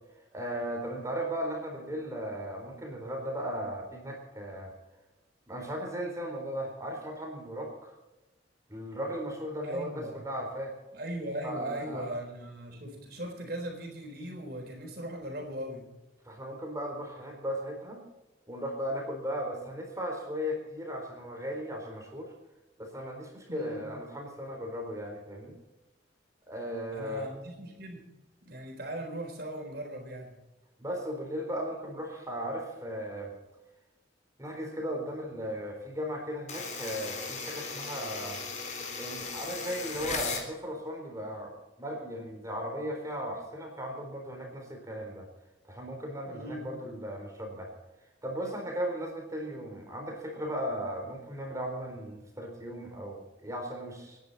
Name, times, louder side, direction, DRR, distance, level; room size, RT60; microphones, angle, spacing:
voice 1, 0.3-4.7 5.5-8.0 8.7-10.7 11.4-12.1 16.2-18.0 18.5-22.3 22.8-25.6 26.5-27.2 30.8-33.4 34.4-38.4 39.0-45.3 45.7-47.7 48.2-54.2, equal, 20° right, 1 dB, 4.0 m, -36 dB
voice 2, 9.6-10.2 10.9-15.9 23.5-23.9 26.9-28.1 28.4-30.4 46.2-46.7, right 1 dB, 60° right, 2 dB, 4.0 m, -39 dB
sound 1, 36.5-40.5, left 4 dB, 40° left, 3.4 m, -37 dB
27.0 x 10.5 x 4.2 m, 1.0 s
head